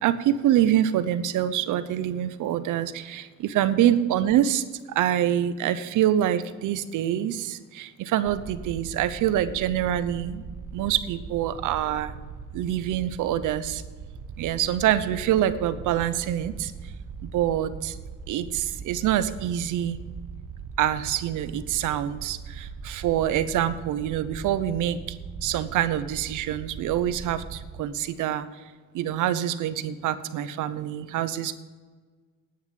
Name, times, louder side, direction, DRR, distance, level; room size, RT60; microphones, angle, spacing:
voice 1, 0.0-10.4 10.7-12.1 12.5-13.8 14.4-16.7 17.2-18.0 18.3-20.0 20.8-25.2 25.4-28.5 28.9-31.5, right 11 dB, 85° right, 13 dB, 0.8 m, -25 dB
sound 1, 8.2-27.8, right 6 dB, 55° right, 1.0 m, -40 dB
9.8 x 9.4 x 7.5 m, 1.4 s
cardioid pair, 90°, 30 cm